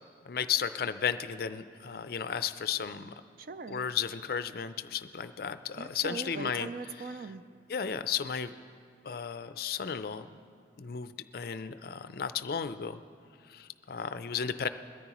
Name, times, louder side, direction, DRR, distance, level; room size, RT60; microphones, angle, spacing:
voice 1, 0.3-3.1 3.7-6.7 7.7-8.5 9.0-10.3 10.8-13.0 13.5-14.7, left 7 dB, 55° left, 12 dB, 0.4 m, -34 dB
voice 2, 3.4-3.9 5.8-7.4, right 4 dB, 50° right, 11 dB, 0.4 m, -40 dB
21.5 x 13.5 x 3.0 m, 2.2 s
head